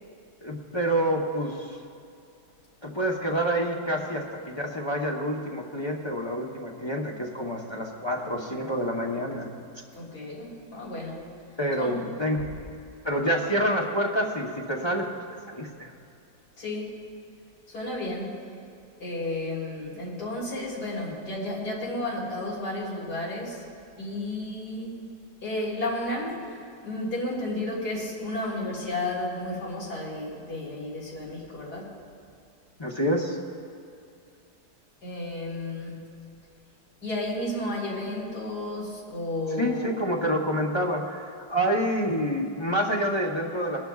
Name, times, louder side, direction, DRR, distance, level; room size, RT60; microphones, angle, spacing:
voice 1, 0.4-1.7 2.8-9.6 11.6-12.6 13.0-15.9 32.8-33.4 39.6-43.8, equal, 20° left, -2 dB, 0.7 m, -28 dB
voice 2, 9.9-11.3 11.8-12.0 16.6-17.0 17.7-18.5 19.0-23.7 24.0-25.0 25.4-26.5 26.8-31.9 35.0-36.2 37.0-40.0, left 1 dB, 60° left, -6 dB, 3.9 m, -32 dB
21.5 x 12.0 x 2.4 m, 2.4 s
omnidirectional pair, 1.9 m